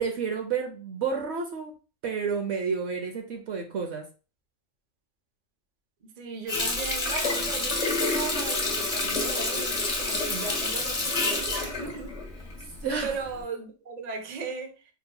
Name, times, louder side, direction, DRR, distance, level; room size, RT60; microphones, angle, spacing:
voice 1, 0.0-1.7 2.0-4.0 12.8-13.1, right 5 dB, 65° right, 3 dB, 0.9 m, -30 dB
voice 2, 6.2-12.5 13.0-14.9, right 5 dB, 40° right, 3 dB, 0.7 m, -37 dB
Water tap faucet, 6.5-12.9 13.3-13.4, left 2 dB, 30° left, 1.2 m, -28 dB
5.2 x 3.0 x 2.2 m, 0.35 s
omnidirectional pair, 1.4 m